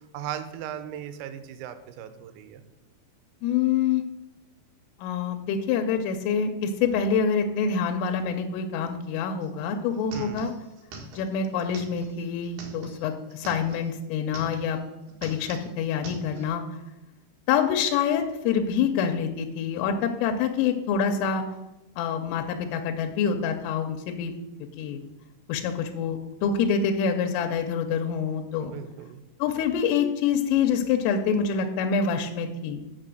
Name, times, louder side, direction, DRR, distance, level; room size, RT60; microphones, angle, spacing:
voice 1, 0.1-2.6 10.1-10.5 28.6-29.2, right 10 dB, 85° right, 10 dB, 3.4 m, -37 dB
voice 2, 3.4-4.0 5.0-10.5 11.1-14.8 15.2-16.6 17.5-21.4 22.0-24.3 24.8-25.0 25.5-28.7 29.4-32.8, left 6 dB, 85° left, 4 dB, 3.3 m, -26 dB
sound 1, 9.4-9.5 9.7-13.9 14.2-14.8 15.1-16.5, right 3 dB, 60° right, 2.4 m, -43 dB
6.7 x 6.5 x 7.7 m, 0.96 s
omnidirectional pair, 5.9 m